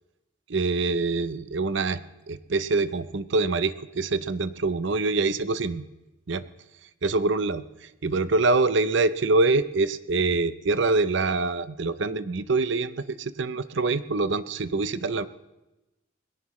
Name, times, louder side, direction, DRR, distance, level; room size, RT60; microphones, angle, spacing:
voice 1, 0.5-2.0 2.3-5.8 6.3-6.4 7.0-15.3, right 3 dB, 65° right, 13 dB, 0.7 m, -25 dB
21.5 x 17.0 x 3.2 m, 1.0 s
head